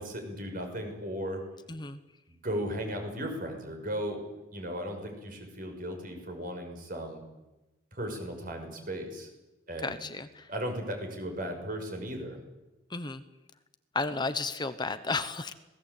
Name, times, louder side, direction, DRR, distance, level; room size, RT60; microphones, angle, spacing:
voice 1, 0.0-1.4 2.3-4.2 4.5-7.2 7.9-9.3 9.7-10.0 10.5-12.4, equal, 50° right, 4 dB, 6.1 m, -36 dB
voice 2, 9.8-10.4 12.9-13.2 13.9-15.5, left 3 dB, 25° left, 11 dB, 1.0 m, -33 dB
26.5 x 19.5 x 8.5 m, 1.0 s
head